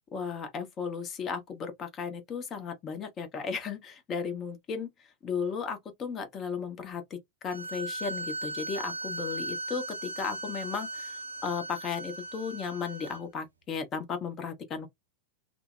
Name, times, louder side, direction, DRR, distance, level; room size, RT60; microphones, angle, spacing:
voice 1, 0.1-4.9 5.2-7.2 7.4-14.9, left 6 dB, 30° left, 0.8 m, -35 dB
sound 1, 7.5-13.2, right 1 dB, 80° right, 0.5 m, -38 dB
2.6 x 2.1 x 2.4 m
figure-of-eight pair, 90°, 0 cm